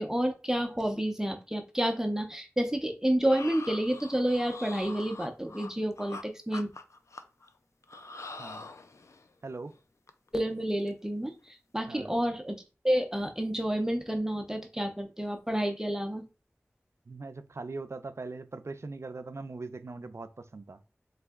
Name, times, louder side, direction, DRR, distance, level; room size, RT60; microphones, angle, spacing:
voice 1, 0.0-6.7 10.3-16.2, right 1 dB, 10° right, 0.7 m, -30 dB
sound 1, 3.3-6.2 6.5-7.5 7.8-9.3 9.7-9.8 10.1-10.3 10.6-10.9 11.3-11.5, left 3 dB, 85° left, 0.4 m, -44 dB
voice 2, 9.4-9.7 11.9-12.2 17.1-20.8, right 3 dB, 70° right, 0.4 m, -41 dB
3.8 x 3.3 x 3.5 m
wide cardioid pair, 45°, 5 cm